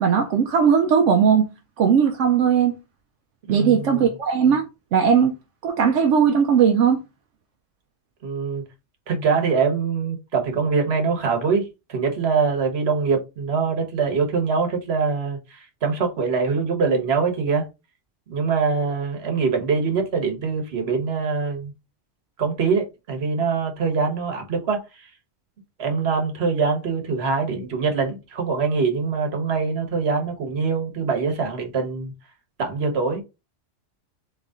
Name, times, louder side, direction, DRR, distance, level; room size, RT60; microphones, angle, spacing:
voice 1, 0.0-1.5 1.8-2.7 3.5-4.7 4.9-5.3 5.6-7.0, right 7 dB, 80° right, 0.9 m, -18 dB
voice 2, 3.5-4.0 8.2-8.6 9.1-17.7 18.3-21.7 22.4-25.1 25.8-32.1 32.6-33.2, right 5 dB, 60° right, 1.3 m, -23 dB
3.8 x 3.1 x 3.5 m
omnidirectional pair, 1.3 m